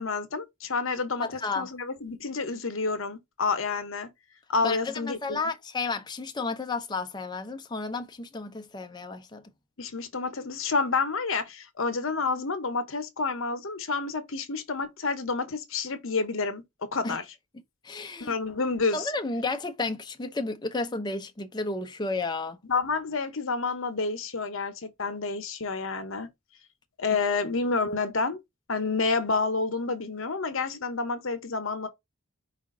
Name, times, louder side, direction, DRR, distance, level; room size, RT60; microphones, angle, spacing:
voice 1, 0.0-4.1 4.5-5.4 9.8-17.2 18.2-19.1 22.7-26.3 27.0-28.4 28.7-31.9, left 4 dB, 65° left, 0.9 m, -29 dB
voice 2, 1.2-1.7 4.6-9.4 17.0-17.2 17.8-18.3 18.9-22.6, left 3 dB, 20° left, 0.5 m, -32 dB
5.0 x 2.4 x 3.7 m
head